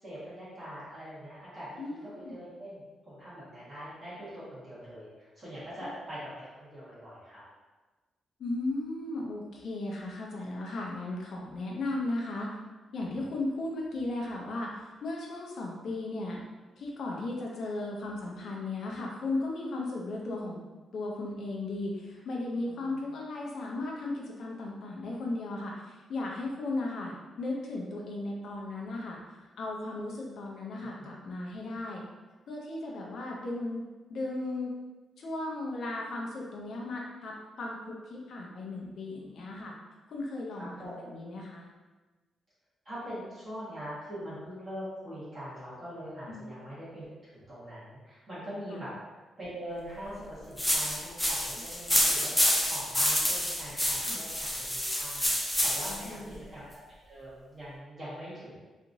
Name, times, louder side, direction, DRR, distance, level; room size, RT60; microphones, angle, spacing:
voice 1, 0.0-7.4 22.6-23.0 30.8-31.1 31.7-31.8 40.6-40.9 42.8-56.7 57.0-58.6, equal, 30° right, -11 dB, 1.2 m, -43 dB
voice 2, 1.8-2.4 8.4-12.5 12.9-16.4 16.8-20.6 20.9-32.0 32.5-33.8 34.1-34.7 35.2-39.7 40.1-41.7 46.3-46.4 48.7-48.8 54.1-54.2 55.9-56.4, left 2 dB, 60° left, -2 dB, 0.5 m, -36 dB
sound 1, 50.6-56.1, equal, 5° left, 0.5 m, -28 dB
2.9 x 2.4 x 2.6 m, 1.2 s
cardioid pair, 150°, 0 cm